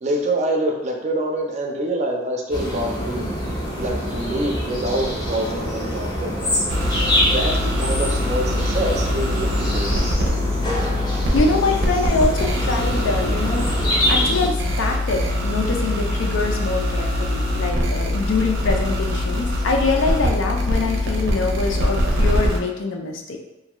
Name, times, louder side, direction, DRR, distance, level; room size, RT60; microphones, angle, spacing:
voice 1, 0.0-3.4 3.7-6.7 7.3-10.1, right 1 dB, 35° right, 1 dB, 0.4 m, -26 dB
sound 1, 2.5-14.5, equal, 20° left, 0.6 m, -25 dB
sound 2, 6.7-22.6, left 1 dB, 85° right, 0.5 m, -23 dB
voice 2, 11.3-13.7 14.1-23.4, left 3 dB, 80° left, 2 dB, 0.4 m, -24 dB
2.6 x 2.2 x 2.9 m, 0.93 s
head